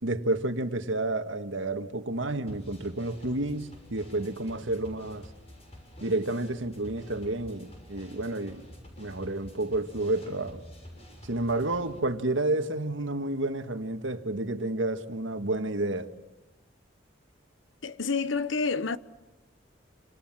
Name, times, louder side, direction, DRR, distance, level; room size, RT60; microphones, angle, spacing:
voice 1, 0.0-5.3 6.0-8.7 9.0-10.6 11.2-16.1, right 2 dB, 85° right, 1.8 m, -30 dB
sound 1, 2.5-12.0, equal, 30° left, 7.0 m, -48 dB
voice 2, 17.8-19.0, left 4 dB, 85° left, 1.0 m, -28 dB
28.0 x 27.0 x 7.5 m
head